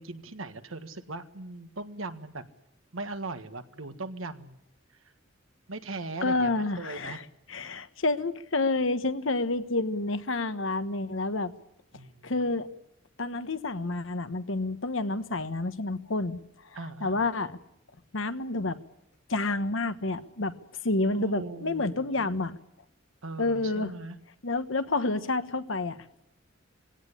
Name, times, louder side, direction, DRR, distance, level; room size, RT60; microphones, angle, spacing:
voice 1, 0.0-2.4 2.9-4.6 5.7-7.2 11.9-12.5 16.7-17.2 21.1-22.3 23.2-24.2, right 2 dB, 85° right, 9 dB, 1.6 m, -39 dB
voice 2, 6.2-7.2 7.5-11.5 12.2-12.7 13.2-16.4 17.0-17.6 18.1-18.8 19.3-20.5 20.8-22.6 23.4-23.9 24.4-26.0, left 2 dB, 70° left, 11 dB, 1.3 m, -29 dB
22.5 x 17.0 x 10.0 m, 0.80 s
head